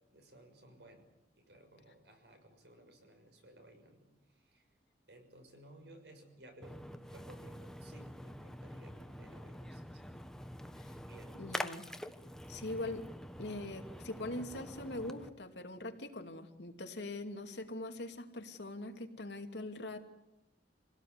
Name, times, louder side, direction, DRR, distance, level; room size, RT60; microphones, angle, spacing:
voice 1, 0.1-1.1 1.3-4.7 5.1-6.8 7.1-10.0 11.0-11.4, right 1 dB, 70° right, 5 dB, 6.4 m, -58 dB
Splash splatter, 6.6-15.3, equal, 5° left, 1.2 m, -46 dB
voice 2, 11.4-11.9 12.5-13.1 13.4-20.0, left 2 dB, 80° left, 5 dB, 2.8 m, -42 dB
27.5 x 17.5 x 9.7 m, 0.95 s
head